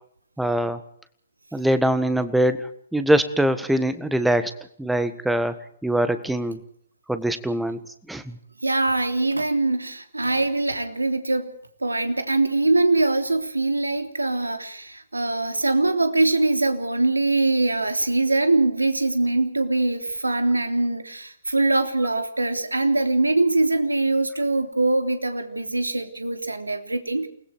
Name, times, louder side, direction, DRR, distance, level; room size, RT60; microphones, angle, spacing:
voice 1, 0.4-0.8 1.5-4.5 4.8-5.5 5.8-6.6 7.1-7.8 8.1-8.4, right 1 dB, ahead, 11 dB, 1.5 m, -23 dB
voice 2, 8.6-11.5 11.8-27.3, right 2 dB, 80° right, 7 dB, 3.3 m, -23 dB
29.0 x 20.5 x 4.7 m, 0.66 s
figure-of-eight pair, 130°, 0 cm